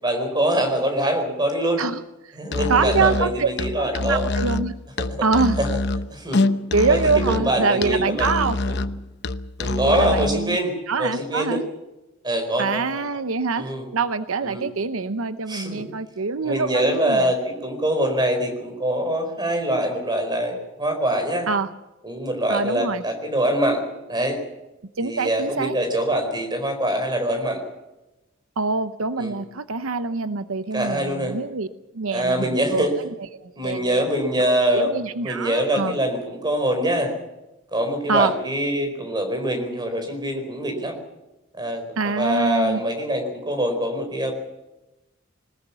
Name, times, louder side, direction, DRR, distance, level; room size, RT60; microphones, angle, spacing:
voice 1, 0.0-1.8 2.3-4.2 5.0-5.1 5.6-5.8 6.1-6.4 6.9-8.8 9.6-10.7 11.0-11.6 12.2-13.0 13.6-13.9 14.4-14.7 15.5-15.9 16.4-21.5 22.0-23.8 24.1-24.4 25.0-27.6 29.2-29.4 30.7-31.4 32.1-32.9 33.6-34.9 35.2-37.1 37.7-41.0 41.5-44.3, right 1 dB, 20° right, 5 dB, 4.6 m, -24 dB
voice 2, 1.8-2.4 2.7-3.5 3.8-4.7 5.2-5.6 6.7-8.6 9.8-10.6 10.9-11.6 12.6-17.3 21.5-21.7 22.5-23.0 25.0-25.7 28.6-31.7 31.9-32.9 33.4-34.0 34.5-36.0 38.1-38.3 42.0-42.8, right 4 dB, 80° right, 12 dB, 0.8 m, -24 dB
Musical instrument, 2.4-10.4, left 2 dB, 55° left, 0.8 m, -26 dB
21.5 x 20.0 x 7.1 m, 1.0 s
head